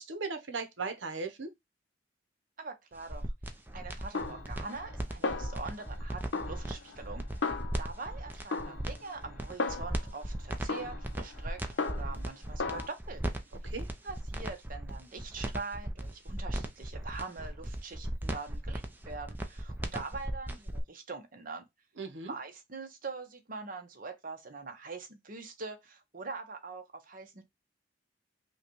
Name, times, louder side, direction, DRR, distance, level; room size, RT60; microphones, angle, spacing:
voice 1, 0.0-1.5 13.6-13.9 22.0-22.3, right 4 dB, 80° right, 0.9 m, -37 dB
voice 2, 2.6-3.3 3.7-7.2 7.8-13.2 14.0-21.6 22.2-27.4, right 4 dB, 50° right, 0.9 m, -43 dB
sound 1, 3.0-20.8, right 1 dB, 10° right, 0.6 m, -37 dB
Snare drum, 4.1-5.0 5.2-6.0 6.3-8.1 8.5-10.2 10.7-12.3 12.6-12.9, left 4 dB, 75° left, 0.7 m, -36 dB
5.4 x 2.3 x 3.0 m
head